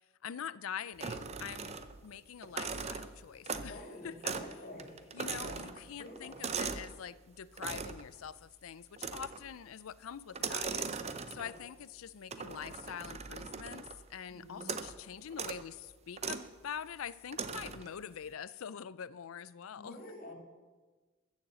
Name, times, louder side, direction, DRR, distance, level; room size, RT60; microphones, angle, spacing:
voice 1, 0.2-4.3 5.1-10.9 11.3-20.0, left 8 dB, 85° left, 0.5 m, -45 dB
sound 1, 1.0-2.1 2.4-3.8 4.2-4.5 4.8-6.9 7.6-8.1 9.0-9.5 10.3-11.6 12.3-14.0 14.6-15.0 15.3-15.6 16.2-16.5 17.3-17.9, right 5 dB, 30° right, 0.6 m, -39 dB
voice 2, 3.5-5.7 6.0-6.4 11.4-11.5 14.3-14.8 19.8-20.3, left 1 dB, 45° left, 2.7 m, -49 dB
14.5 x 7.3 x 7.6 m
head